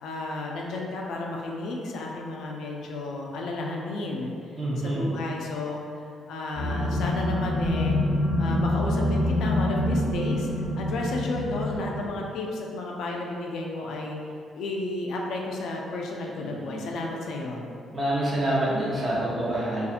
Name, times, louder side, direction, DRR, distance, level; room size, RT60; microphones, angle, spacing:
voice 1, 0.0-4.3 4.8-8.0 8.4-14.2 14.5-17.7, left 2 dB, 75° left, -1 dB, 0.4 m, -32 dB
voice 2, 4.6-5.1 16.4-16.9 17.9-19.9, right 1 dB, 25° right, -7 dB, 0.7 m, -27 dB
sound 1, 6.5-12.2, left 1 dB, 25° left, 1.0 m, -26 dB
2.6 x 2.4 x 2.4 m, 2.3 s
cardioid pair, 120°, 0 cm